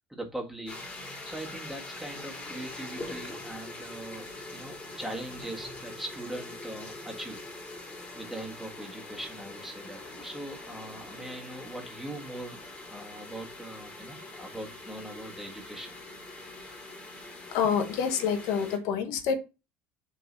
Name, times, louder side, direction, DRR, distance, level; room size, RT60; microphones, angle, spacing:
voice 1, 0.1-0.9 1.2-7.7 8.1-15.9, right 1 dB, 5° right, 1.7 m, -41 dB
sound 1, 0.7-18.8, left 2 dB, 25° left, 3.1 m, -43 dB
voice 2, 17.5-19.4, left 7 dB, 75° left, 1.1 m, -27 dB
6.5 x 3.9 x 3.9 m
cardioid pair, 115°, 6 cm